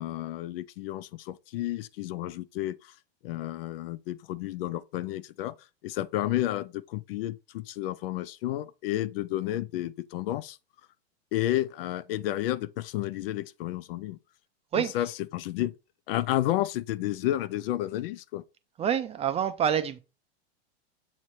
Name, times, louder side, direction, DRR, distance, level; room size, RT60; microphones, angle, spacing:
voice 1, 0.0-2.9 3.2-5.5 5.8-10.6 11.3-14.2 14.7-15.7 16.1-18.4, left 14 dB, 60° left, 0.5 m, -31 dB
voice 2, 18.8-20.0, right 8 dB, 20° right, 0.5 m, -27 dB
7.2 x 3.2 x 4.3 m
hypercardioid pair, 125°, 33 cm